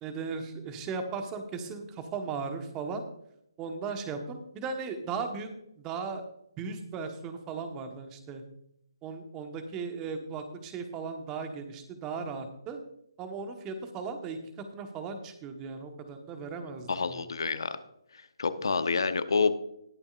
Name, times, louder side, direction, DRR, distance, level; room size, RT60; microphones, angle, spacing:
voice 1, 0.0-3.1 3.6-5.5 5.8-6.2 6.6-8.4 9.0-12.8 13.2-14.4 14.7-17.3, right 5 dB, 20° right, 6 dB, 1.3 m, -37 dB
voice 2, 16.9-17.8 18.4-19.5, left 4 dB, 65° left, 11 dB, 0.9 m, -27 dB
20.0 x 6.9 x 2.5 m, 0.76 s
figure-of-eight pair, 145°, 3 cm